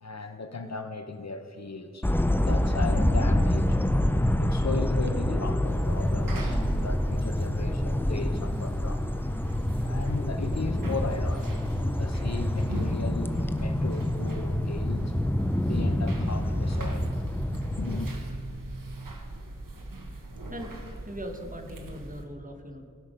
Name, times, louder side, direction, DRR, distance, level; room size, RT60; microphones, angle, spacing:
voice 1, 0.0-3.8 4.4-9.1 9.8-15.1 15.6-17.1 17.8-18.2, left 3 dB, 55° left, 0.8 m, -37 dB
sound 1, 2.0-18.1, left 1 dB, 5° left, 0.5 m, -27 dB
sound 2, 5.6-22.2, right 2 dB, 85° right, 1.3 m, -39 dB
sound 3, 13.9-19.2, right 4 dB, 55° right, 0.6 m, -43 dB
voice 2, 21.0-22.9, equal, 25° right, 1.4 m, -40 dB
17.0 x 5.9 x 5.1 m
wide cardioid pair, 65°, 32 cm